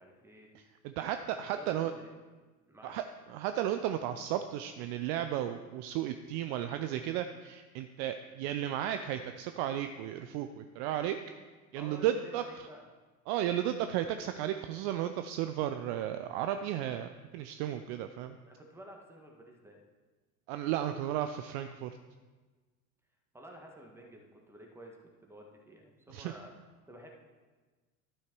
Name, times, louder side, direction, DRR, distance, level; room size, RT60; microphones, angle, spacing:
voice 1, 0.0-0.5 1.5-2.1 2.7-3.0 11.7-12.8 18.4-19.8 23.3-26.5 26.9-27.1, right 1 dB, 5° right, 0 dB, 1.7 m, -51 dB
voice 2, 0.5-1.9 2.8-11.2 11.7-12.4 13.3-18.4 20.5-21.9 26.1-26.3, right 11 dB, 45° right, 9 dB, 0.5 m, -34 dB
12.0 x 5.7 x 4.6 m, 1.3 s
figure-of-eight pair, 75°, 44 cm